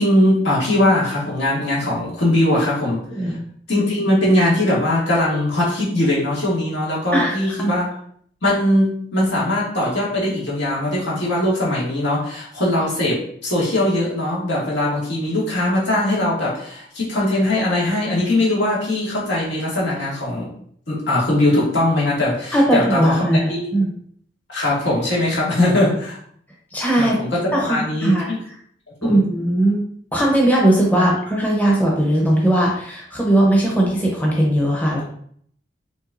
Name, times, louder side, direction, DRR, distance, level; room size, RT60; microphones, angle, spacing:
voice 1, 0.0-3.0 3.7-7.8 8.4-20.5 20.9-23.7 24.5-26.2 27.0-28.4 29.0-29.2 30.9-31.1, left 1 dB, 80° left, -6 dB, 1.9 m, -20 dB
voice 2, 7.1-7.8 22.5-23.9 26.7-27.1 27.5-28.3 29.0-29.8 30.1-35.0, right 1 dB, 10° left, -3 dB, 0.8 m, -18 dB
6.1 x 3.1 x 2.6 m, 0.62 s
head